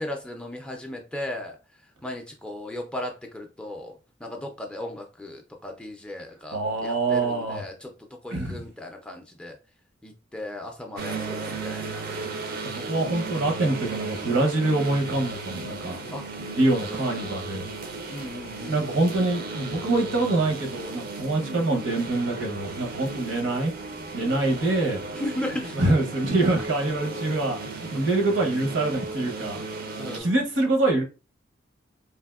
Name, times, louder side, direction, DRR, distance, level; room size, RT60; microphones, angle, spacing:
voice 1, 0.0-1.6 2.0-9.6 10.0-12.1 16.1-16.2 16.7-17.3 18.1-19.2 21.4-21.7 25.1-25.8 30.0-30.3, left 1 dB, 5° left, 0.3 m, -36 dB
voice 2, 6.5-7.6 8.3-8.6 12.7-17.7 18.7-23.7 24.1-25.0 25.7-27.6 27.9-29.6 30.1-31.0, right 2 dB, 70° right, 0.8 m, -25 dB
sound 1, 11.0-30.2, right 3 dB, 50° right, 0.5 m, -35 dB
3.4 x 2.5 x 2.3 m
head